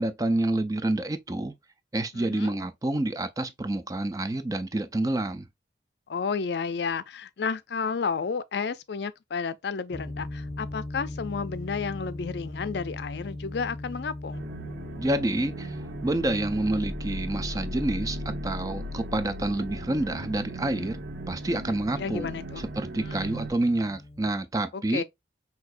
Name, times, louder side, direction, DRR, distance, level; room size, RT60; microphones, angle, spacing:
voice 1, 0.0-1.5 1.9-5.5 15.0-15.8 16.0-21.0 21.3-22.3 22.6-25.0, right 2 dB, 20° right, 0.4 m, -28 dB
voice 2, 2.1-2.6 6.1-14.5 22.0-22.7 23.0-23.3 24.7-25.0, left 5 dB, 70° left, 0.4 m, -32 dB
sound 1, 9.9-24.3, left 1 dB, 15° left, 0.7 m, -40 dB
sound 2, 14.3-23.5, right 1 dB, 75° right, 0.6 m, -37 dB
5.9 x 2.8 x 2.5 m
head